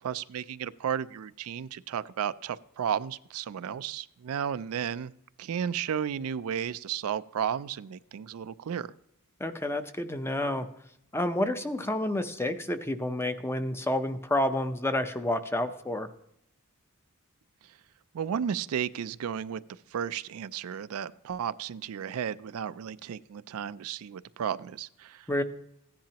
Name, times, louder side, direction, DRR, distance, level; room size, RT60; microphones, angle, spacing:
voice 1, 0.0-5.1 5.4-8.9 18.1-19.6 19.9-25.3, right 8 dB, 70° right, 15 dB, 0.4 m, -33 dB
voice 2, 9.4-10.7 11.1-16.1 25.3-25.4, left 1 dB, 10° left, 9 dB, 0.6 m, -29 dB
15.0 x 10.5 x 2.9 m, 0.77 s
head